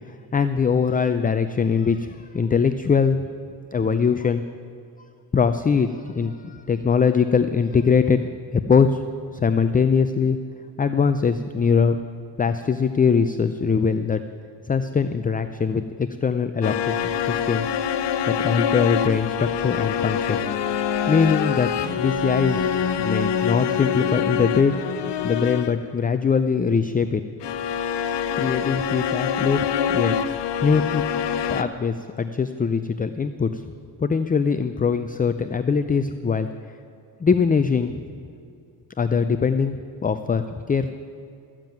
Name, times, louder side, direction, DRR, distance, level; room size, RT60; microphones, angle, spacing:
voice 1, 0.3-3.2 3.7-4.4 5.3-8.2 8.5-9.0 9.3-10.4 10.8-12.0 12.4-14.2 14.7-17.7 18.3-20.5 21.1-21.7 22.0-24.7 25.2-27.2 28.4-29.7 29.9-30.2 30.6-31.0 31.5-33.6 34.0-36.5 37.2-38.0 39.0-39.8 40.0-40.9, left 6 dB, 20° left, 9 dB, 0.4 m, -22 dB
sound 1, 16.6-25.9 27.4-31.6, left 8 dB, 75° left, 0.7 m, -25 dB
14.0 x 7.5 x 9.1 m, 2.6 s
cardioid pair, 105°, 42 cm